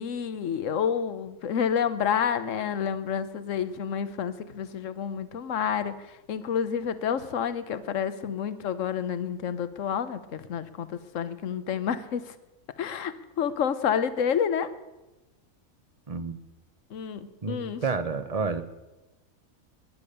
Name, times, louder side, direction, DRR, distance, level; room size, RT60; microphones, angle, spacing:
voice 1, 0.0-5.9 6.3-10.9 11.1-12.2 12.8-14.7 16.9-17.8, left 7 dB, 60° left, 13 dB, 1.3 m, -29 dB
voice 2, 17.4-18.6, right 4 dB, 30° right, 11 dB, 0.9 m, -30 dB
20.5 x 10.5 x 6.8 m, 1.0 s
omnidirectional pair, 1.5 m